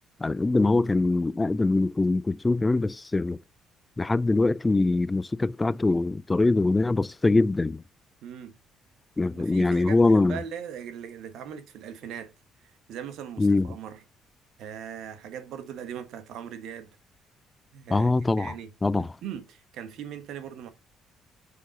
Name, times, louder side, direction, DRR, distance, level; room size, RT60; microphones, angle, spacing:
voice 1, 0.2-3.4 4.0-7.8 9.2-10.4 13.4-13.7 17.9-18.5 18.8-19.1, left 2 dB, 20° left, 0.4 m, -23 dB
voice 2, 8.2-8.5 9.3-12.3 12.9-14.0 14.6-16.9 17.7-20.7, right 8 dB, 75° right, 1.2 m, -40 dB
6.8 x 3.8 x 5.1 m
supercardioid pair, 70°, 0 cm